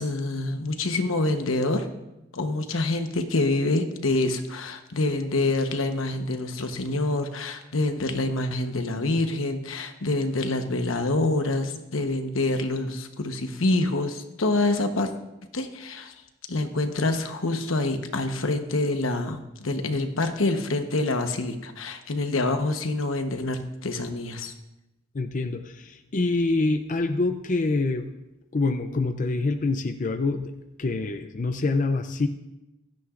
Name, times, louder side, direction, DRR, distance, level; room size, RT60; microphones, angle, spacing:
voice 1, 0.0-1.9 2.3-15.1 15.5-16.1 16.5-24.5, left 2 dB, 85° left, 7 dB, 1.1 m, -26 dB
voice 2, 25.1-28.1 28.5-30.5 30.8-32.3, left 3 dB, 40° left, 8 dB, 0.5 m, -26 dB
16.0 x 13.0 x 2.5 m, 0.95 s
head